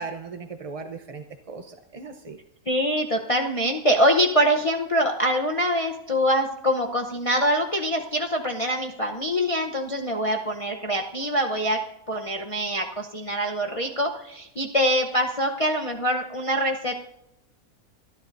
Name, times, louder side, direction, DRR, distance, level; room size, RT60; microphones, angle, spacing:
voice 1, 0.0-2.4, right 4 dB, 35° right, 5 dB, 0.6 m, -37 dB
voice 2, 2.7-11.8 12.1-17.0, equal, 30° left, 1 dB, 0.7 m, -24 dB
28.0 x 11.0 x 2.6 m, 0.86 s
omnidirectional pair, 1.6 m